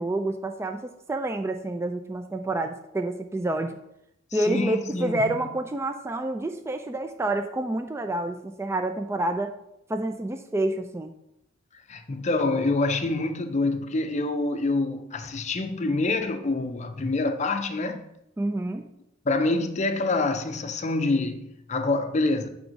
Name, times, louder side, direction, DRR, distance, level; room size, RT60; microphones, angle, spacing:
voice 1, 0.0-3.7 4.3-9.5 9.9-11.1 18.4-18.9, right 2 dB, 15° right, 0.3 m, -28 dB
voice 2, 4.3-5.5 11.7-18.1 19.2-22.5, left 2 dB, 35° left, 0.6 m, -26 dB
7.6 x 3.5 x 5.1 m
head